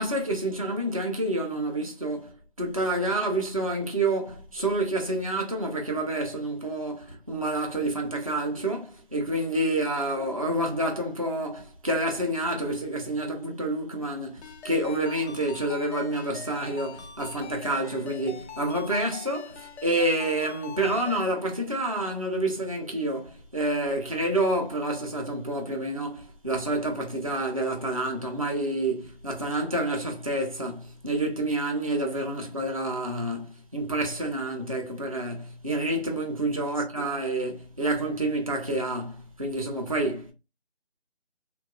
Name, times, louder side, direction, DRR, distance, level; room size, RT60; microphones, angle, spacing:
voice 1, 0.0-40.3, right 1 dB, 35° right, 0.5 m, -28 dB
Ringtone, 14.4-21.3, left 7 dB, 75° left, 0.5 m, -43 dB
3.6 x 2.2 x 2.2 m
figure-of-eight pair, 165°, 34 cm